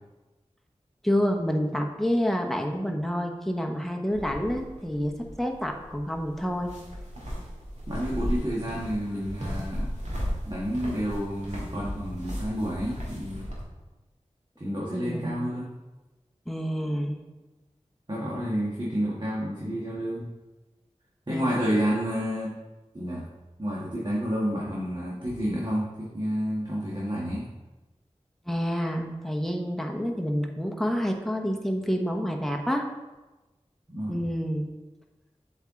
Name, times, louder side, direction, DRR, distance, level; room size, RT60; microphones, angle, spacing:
voice 1, 1.0-5.1 5.4-6.7 14.9-15.4 16.5-17.2 21.3-21.4 28.5-32.9 34.1-34.7, equal, ahead, 2 dB, 0.9 m, -28 dB
sound 1, 4.1-13.6, equal, 70° right, 1.9 m, -35 dB
voice 2, 7.9-9.9 10.4-13.4 14.6-15.7 18.1-20.3 21.3-22.5 22.9-23.3 23.6-27.4 33.9-34.2, equal, 40° right, -6 dB, 1.4 m, -30 dB
7.8 x 4.4 x 3.7 m, 1.1 s
wide cardioid pair, 50°, 12 cm